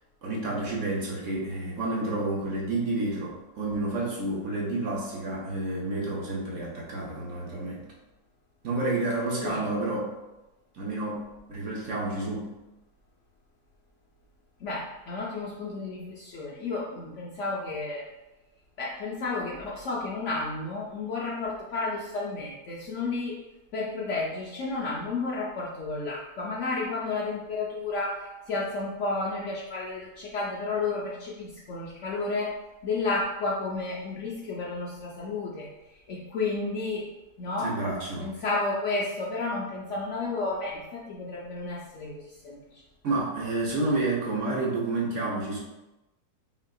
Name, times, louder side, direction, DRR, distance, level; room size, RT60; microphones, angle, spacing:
voice 1, 0.2-7.8 8.6-10.1 10.7-12.5 37.6-38.3 43.0-45.6, right 2 dB, 60° right, -3 dB, 0.9 m, -30 dB
voice 2, 14.6-18.1 18.8-23.4 23.7-35.7 36.1-37.1 37.4-37.8 38.2-42.8, left 3 dB, 65° left, -4 dB, 0.8 m, -32 dB
5.4 x 2.4 x 2.3 m, 0.99 s
omnidirectional pair, 1.7 m